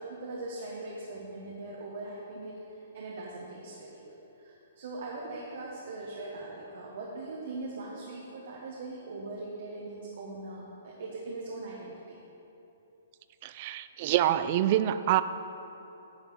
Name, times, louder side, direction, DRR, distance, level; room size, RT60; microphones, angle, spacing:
voice 1, 0.0-12.2, right 2 dB, 65° right, -3 dB, 1.3 m, -41 dB
voice 2, 13.4-15.2, right 12 dB, 45° right, 13 dB, 0.4 m, -26 dB
10.5 x 5.0 x 5.7 m, 3.0 s
hypercardioid pair, 145°, 0 cm